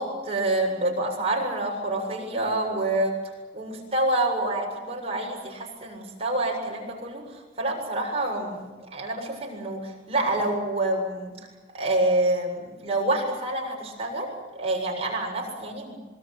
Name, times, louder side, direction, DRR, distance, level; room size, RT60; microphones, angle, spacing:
voice 1, 0.0-3.1 3.5-7.2 7.6-8.7 8.9-11.3 11.7-16.0, right 2 dB, 30° right, 0 dB, 7.5 m, -27 dB
26.5 x 23.5 x 8.0 m, 1.2 s
head